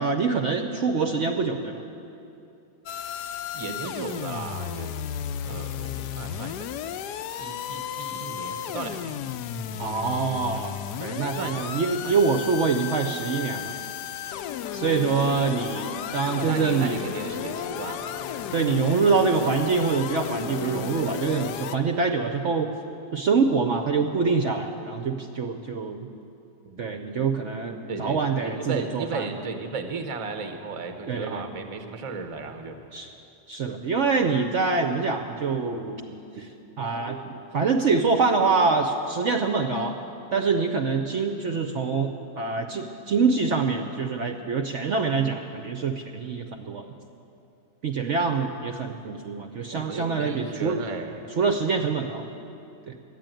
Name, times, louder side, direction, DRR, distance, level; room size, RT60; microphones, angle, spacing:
voice 1, 0.0-1.8 9.8-13.8 14.7-17.0 18.5-22.7 23.1-26.1 26.8-29.4 31.1-31.4 32.9-33.1 33.5-36.5 36.8-40.0 40.3-46.9 47.8-50.8 51.4-52.3 52.9-53.0, right 4 dB, 60° right, 5 dB, 0.8 m, -25 dB
sound 1, 2.9-21.8, left 9 dB, 90° left, 1.2 m, -34 dB
voice 2, 3.5-4.9 5.4-6.7 7.4-9.2 9.7-10.0 11.3-11.7 12.0-12.1 14.7-15.0 16.4-18.3 26.7-26.9 27.9-33.1 49.7-51.3, right 4 dB, 30° right, 6 dB, 0.6 m, -35 dB
12.0 x 9.6 x 9.0 m, 2.7 s
omnidirectional pair, 1.7 m